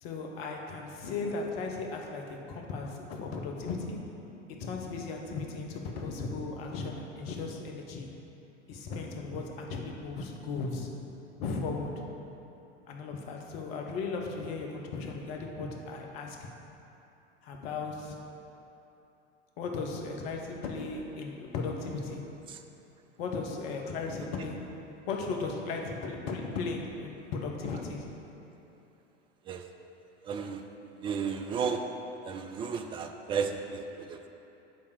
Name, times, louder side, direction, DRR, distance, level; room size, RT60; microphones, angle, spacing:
voice 1, 0.0-4.0 4.5-8.1 8.7-10.9 11.4-12.1 12.9-16.5 17.4-18.2 19.6-22.3 23.2-28.1, left 4 dB, 55° left, 2 dB, 1.2 m, -36 dB
voice 2, 30.2-30.6 31.0-31.8 32.2-34.3, right 6 dB, 15° right, 6 dB, 0.3 m, -33 dB
9.4 x 3.5 x 6.8 m, 2.9 s
figure-of-eight pair, 85°, 36 cm